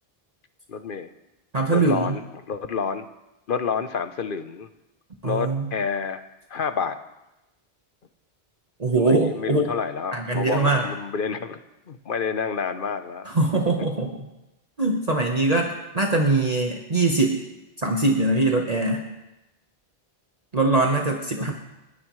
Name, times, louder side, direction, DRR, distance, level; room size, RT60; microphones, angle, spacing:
voice 1, 0.7-1.1 1.7-2.2 2.5-3.0 3.5-4.7 5.2-6.2 6.5-7.0 9.0-11.6 11.9-13.3 21.4-21.5, left 6 dB, 55° left, 10 dB, 1.0 m, -28 dB
voice 2, 1.5-2.2 5.2-5.7 8.8-9.7 10.1-10.9 13.3-14.3 14.8-17.4 17.8-19.1 20.5-21.5, right 2 dB, 40° right, 1 dB, 1.3 m, -22 dB
30.0 x 11.0 x 3.2 m, 0.97 s
omnidirectional pair, 1.1 m